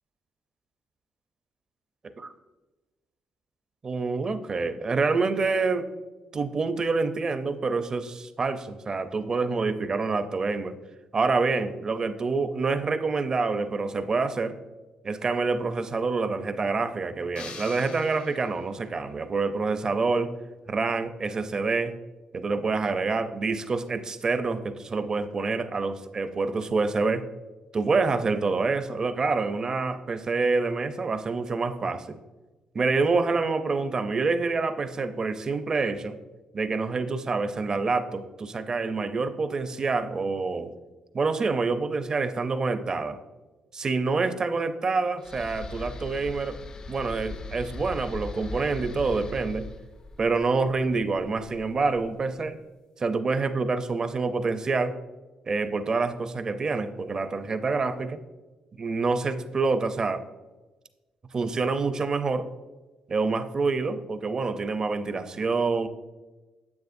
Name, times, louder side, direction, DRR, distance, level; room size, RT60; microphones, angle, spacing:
voice 1, 3.8-5.9 6.3-10.8 11.1-14.6 15.0-20.3 20.7-22.0 22.3-27.2 27.7-32.2 32.7-36.2 36.5-40.7 41.1-43.2 43.7-46.6 46.9-49.6 50.2-52.6 53.0-54.9 55.5-58.2 58.8-60.2 61.3-62.5 63.1-65.9, right 4 dB, 30° right, 10 dB, 0.5 m, -27 dB
sound 1, 17.4-18.9, left 5 dB, 70° left, 0.9 m, -44 dB
sound 2, 45.2-52.4, left 3 dB, 30° left, 0.4 m, -40 dB
9.5 x 7.7 x 2.6 m, 1.2 s
cardioid pair, 135°, 2 cm